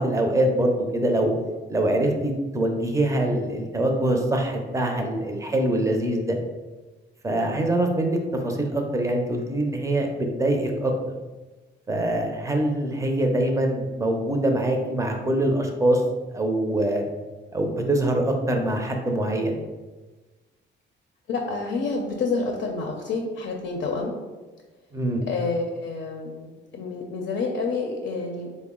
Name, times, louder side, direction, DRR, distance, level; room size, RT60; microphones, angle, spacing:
voice 1, 0.0-1.3 1.7-6.4 7.2-10.9 11.9-16.0 16.3-17.0 17.5-19.6 24.9-25.2, right 1 dB, 15° right, 3 dB, 0.6 m, -24 dB
voice 2, 21.3-24.1 25.3-28.5, left 3 dB, 65° left, 1 dB, 0.5 m, -28 dB
3.8 x 2.1 x 3.6 m, 1.2 s
cardioid pair, 90°, 20 cm